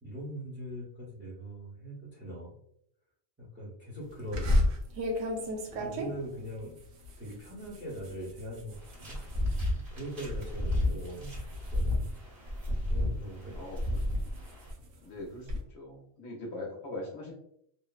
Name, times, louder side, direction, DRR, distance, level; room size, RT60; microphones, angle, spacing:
voice 1, 0.0-2.6 3.4-4.7 5.5-6.8 7.2-9.2 9.9-11.4 11.7-12.1 12.9-13.7, right 1 dB, 10° right, -6 dB, 0.7 m, -41 dB
sound 1, 4.3-9.7 10.1-10.5 10.8-12.9 13.4-15.6, left 1 dB, 80° right, 1.0 m, -34 dB
voice 2, 5.7-6.1 13.5-14.0 15.0-17.3, left 2 dB, 65° left, -2 dB, 0.9 m, -42 dB
sound 2, 8.7-14.7, left 1 dB, 40° right, 1.3 m, -32 dB
3.1 x 2.1 x 2.3 m, 0.71 s
omnidirectional pair, 1.4 m